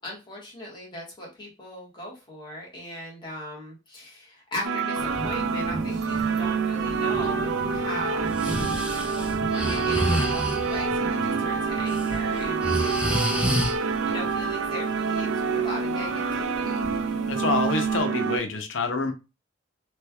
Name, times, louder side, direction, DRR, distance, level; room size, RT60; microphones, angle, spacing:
voice 1, 0.0-16.9, equal, 25° left, 1.3 m, -38 dB
sound 1, 4.6-18.4, right 5 dB, 90° right, 0.4 m, -27 dB
sound 2, 5.0-18.0, equal, 20° right, 1.1 m, -40 dB
Breathing, 8.3-10.8 11.7-12.0 12.4-13.7, equal, 5° right, 0.4 m, -28 dB
voice 2, 17.3-19.1, left 4 dB, 80° left, 0.7 m, -27 dB
3.1 x 3.1 x 2.3 m
head